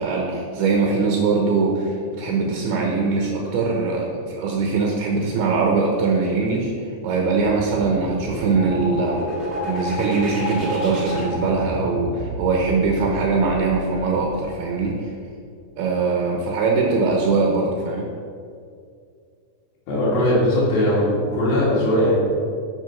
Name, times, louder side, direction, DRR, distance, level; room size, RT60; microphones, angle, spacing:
voice 1, 0.0-9.2 9.6-15.1 15.8-18.1, right 4 dB, 75° right, 0 dB, 2.7 m, -22 dB
sound 1, 7.3-14.8, equal, 30° right, 1.3 m, -31 dB
voice 2, 19.9-21.1 21.3-22.2, left 1 dB, 60° left, -8 dB, 4.2 m, -19 dB
11.0 x 5.5 x 6.1 m, 2.3 s
omnidirectional pair, 5.1 m